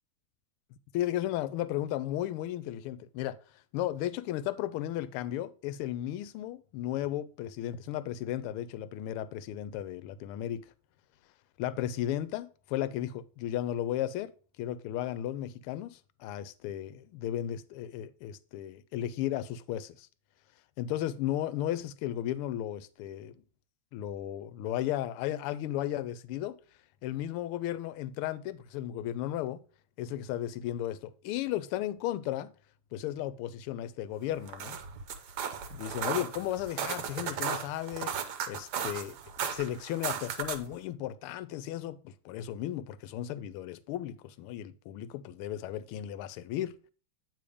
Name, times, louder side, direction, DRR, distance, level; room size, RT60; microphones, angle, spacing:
voice 1, 0.9-3.4 3.7-10.6 11.6-14.3 14.6-20.1 20.8-23.3 23.9-26.6 27.0-29.6 30.0-32.5 32.9-34.8 35.7-38.1 38.5-46.7, left 12 dB, 85° left, 1.5 m, -35 dB
sound 1, 34.3-40.7, right 7 dB, 65° right, 1.1 m, -36 dB
8.5 x 3.5 x 5.0 m
omnidirectional pair, 2.4 m